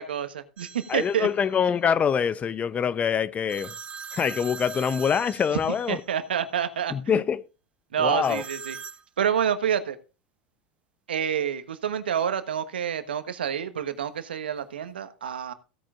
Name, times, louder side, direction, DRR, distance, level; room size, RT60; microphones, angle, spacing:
voice 1, 0.0-1.3 5.9-6.9 7.9-8.8 9.2-10.0 11.1-15.5, right 8 dB, 85° right, 1.2 m, -28 dB
sound 1, 0.6-1.3 3.5-6.1 8.2-9.0, right 6 dB, 20° right, 0.8 m, -41 dB
voice 2, 0.9-3.7 4.1-6.0 6.9-7.4 8.0-8.4, left 7 dB, 25° left, 0.6 m, -25 dB
16.5 x 8.7 x 2.5 m
hypercardioid pair, 100°, 5 cm